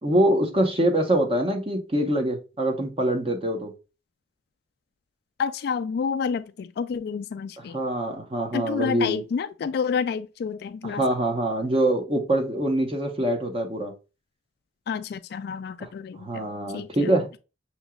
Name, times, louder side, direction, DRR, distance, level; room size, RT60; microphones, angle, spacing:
voice 1, 0.0-3.7 7.7-9.2 10.8-13.9 16.2-17.3, right 1 dB, 35° right, 1.0 m, -24 dB
voice 2, 5.4-7.8 8.5-11.0 14.9-17.4, left 6 dB, 60° left, 0.3 m, -29 dB
6.2 x 2.9 x 2.3 m
head